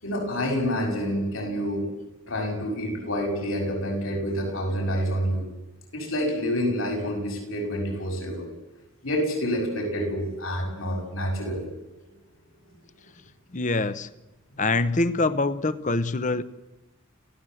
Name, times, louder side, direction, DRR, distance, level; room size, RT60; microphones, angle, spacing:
voice 1, 0.0-1.9 2.3-5.5 5.9-8.5 9.0-11.7, equal, 70° left, 2 dB, 7.0 m, -28 dB
voice 2, 13.5-14.1 14.6-16.4, left 2 dB, 35° left, 14 dB, 0.8 m, -24 dB
29.5 x 16.0 x 7.9 m, 1.0 s
head